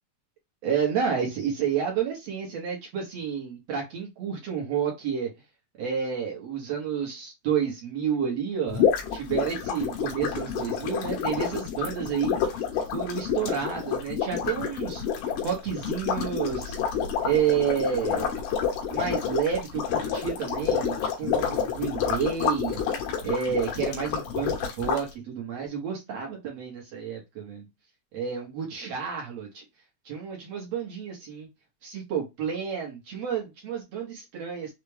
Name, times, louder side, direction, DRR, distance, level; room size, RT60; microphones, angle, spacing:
voice 1, 0.6-5.3 5.8-12.6 12.9-15.0 15.4-16.8 17.2-18.3 18.9-22.8 23.2-27.6 28.1-29.6 30.0-31.5 31.8-34.7, right 7 dB, 75° right, 1.4 m, -30 dB
sound 1, 8.7-25.0, left 7 dB, 70° left, 2.9 m, -29 dB
6.5 x 2.2 x 3.3 m
omnidirectional pair, 4.8 m